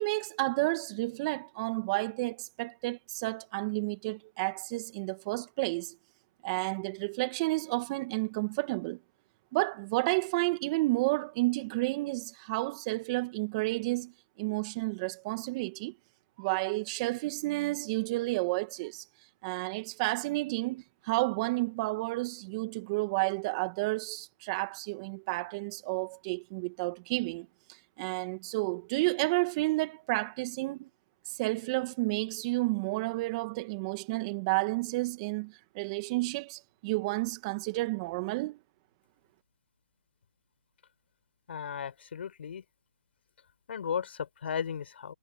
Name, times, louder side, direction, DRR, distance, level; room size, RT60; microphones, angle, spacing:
voice 1, 0.0-5.9 6.4-9.0 9.5-14.1 14.4-15.9 16.4-19.0 19.4-30.9 31.3-38.6, right 23 dB, 30° right, 1.9 m, -31 dB
voice 2, 41.5-42.6 43.7-45.1, left 7 dB, 60° left, 5.4 m, -35 dB
hypercardioid pair, 150°, 7 cm